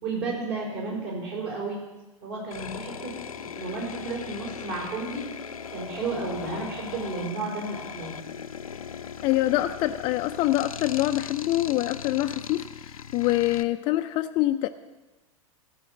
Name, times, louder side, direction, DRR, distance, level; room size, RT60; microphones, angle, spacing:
voice 1, 0.0-1.8 2.2-3.1 3.4-5.2 5.7-8.3, right 3 dB, 50° right, 4.7 m, -32 dB
sound 1, 2.5-13.6, left 7 dB, 75° left, 0.6 m, -39 dB
voice 2, 9.2-14.7, left 15 dB, 30° left, 0.4 m, -25 dB
14.0 x 5.1 x 7.5 m
figure-of-eight pair, 95°, 18 cm